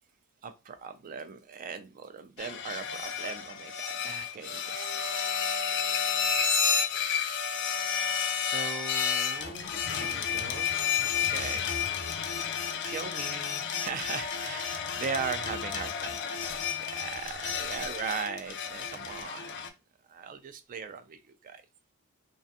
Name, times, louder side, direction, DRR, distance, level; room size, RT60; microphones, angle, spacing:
voice 1, 0.4-5.4 7.4-7.6 8.4-10.7 11.0-11.7 12.2-12.4 12.8-19.6 20.1-21.6, right 6 dB, 40° right, 0.3 m, -39 dB
sound 1, 2.4-19.7, left 7 dB, 55° left, 0.4 m, -31 dB
2.4 x 2.3 x 2.6 m
head